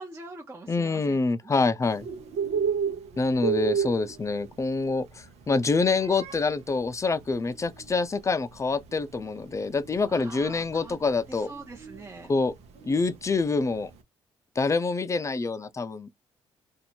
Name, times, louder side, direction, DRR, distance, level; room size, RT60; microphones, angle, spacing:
voice 1, 0.0-1.7 10.1-11.0 11.3-12.3, right 3 dB, 25° right, 0.8 m, -44 dB
voice 2, 0.7-2.1 3.2-11.5 12.3-12.5 12.8-13.9 14.6-16.1, left 3 dB, 25° left, 0.6 m, -26 dB
Bird, 1.8-14.0, right 7 dB, 80° right, 0.9 m, -34 dB
2.7 x 2.6 x 4.3 m
cardioid pair, 80°, 11 cm